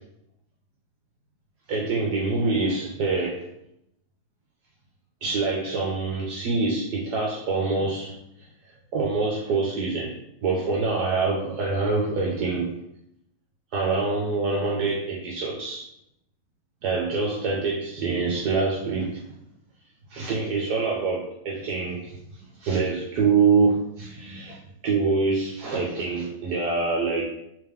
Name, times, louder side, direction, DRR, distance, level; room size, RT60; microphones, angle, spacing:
voice 1, 1.7-3.5 5.2-8.5 8.9-10.1 10.4-12.7 13.7-15.9 16.8-19.2 20.1-27.3, right 4 dB, 70° right, -2 dB, 1.1 m, -25 dB
3.4 x 3.3 x 3.3 m, 0.78 s
omnidirectional pair, 2.0 m